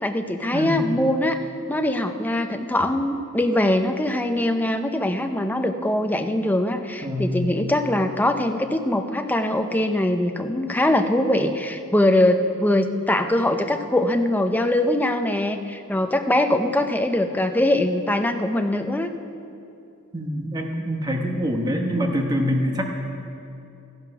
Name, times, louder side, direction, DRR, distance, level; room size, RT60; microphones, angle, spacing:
voice 1, 0.0-19.1, left 1 dB, 10° left, 6 dB, 0.6 m, -22 dB
voice 2, 0.5-0.9 7.0-7.5 20.1-22.8, equal, 20° right, 2 dB, 1.1 m, -25 dB
13.5 x 10.5 x 6.0 m, 2.7 s
head